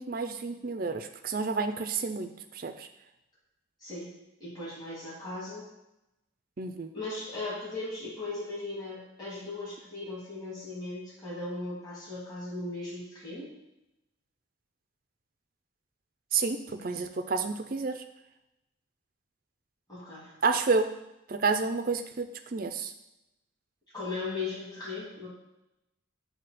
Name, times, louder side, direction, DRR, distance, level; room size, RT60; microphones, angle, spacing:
voice 1, 0.0-2.3 2.5-2.9 6.6-6.9 16.3-18.0 20.4-20.9 21.3-22.9, right 4 dB, 45° right, 7 dB, 0.5 m, -30 dB
voice 2, 4.4-5.7 6.9-13.5 19.9-20.3 23.9-25.3, left 2 dB, 20° left, -8 dB, 2.5 m, -37 dB
7.7 x 2.8 x 5.9 m, 0.90 s
head